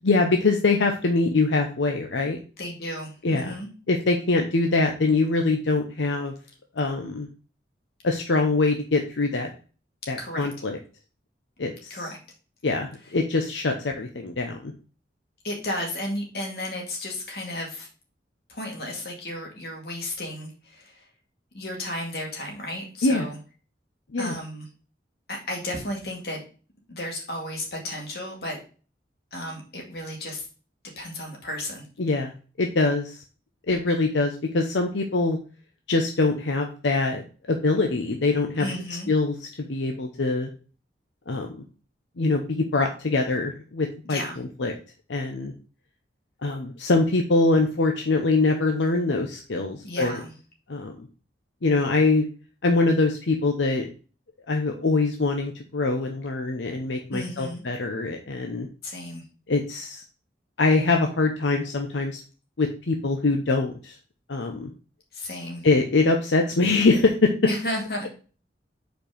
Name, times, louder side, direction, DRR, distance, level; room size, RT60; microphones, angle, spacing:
voice 1, 0.0-2.4 3.2-3.6 3.9-6.3 6.8-7.3 8.0-9.5 10.1-10.8 11.6-12.1 12.6-14.7 23.0-23.3 24.1-24.3 32.0-32.3 32.6-33.2 33.7-35.4 35.9-37.2 37.5-38.7 39.1-40.5 41.3-41.5 42.2-44.2 44.6-44.7 45.1-45.5 46.4-50.2 50.7-51.1 51.6-52.2 52.6-53.9 54.5-58.7 59.5-60.0 60.6-62.2 62.6-64.0 64.3-64.7 65.6-67.3, left 3 dB, 85° left, 3 dB, 0.8 m, -23 dB
voice 2, 2.6-3.7 10.2-10.5 11.9-12.2 15.4-17.9 18.5-21.0 21.5-23.4 24.2-24.7 25.3-26.4 26.9-28.6 29.3-30.5 31.0-31.9 38.6-39.1 44.0-44.4 49.8-50.3 57.1-57.6 58.8-59.3 65.1-65.6 67.4-68.1, left 1 dB, 55° left, 0 dB, 2.2 m, -33 dB
5.3 x 4.5 x 5.0 m, 0.37 s
head